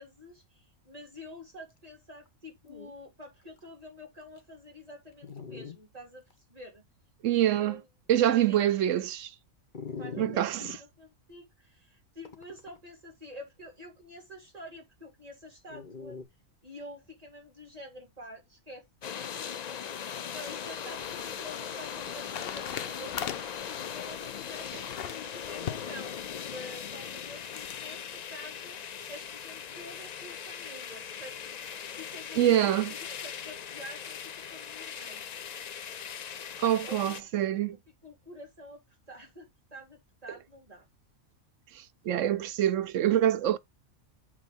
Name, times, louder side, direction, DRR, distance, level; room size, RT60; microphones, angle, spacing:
voice 1, 0.0-6.2 6.5-6.8 7.3-7.9 8.3-8.9 10.0-16.2 16.6-18.9 19.2-23.2 23.7-31.7 31.9-35.2 36.8-37.2 37.5-38.8 39.1-40.9, left 1 dB, 25° right, 3.7 m, -48 dB
Dog, 2.3-2.4 2.6-2.9 3.6-3.7 4.4-4.5 5.2-5.8 6.3-6.4 9.7-10.8 12.2-12.8 15.7-16.2, left 5 dB, 40° left, 1.3 m, -41 dB
voice 2, 7.2-7.8 8.1-9.3 10.2-10.8 32.4-32.9 36.6-37.8 41.7-43.6, right 11 dB, 70° right, 1.0 m, -25 dB
sound 1, 19.0-37.2, left 8 dB, 80° left, 0.3 m, -40 dB
sound 2, 20.6-27.8, left 9 dB, 55° left, 0.8 m, -42 dB
7.5 x 4.0 x 6.3 m
omnidirectional pair, 1.4 m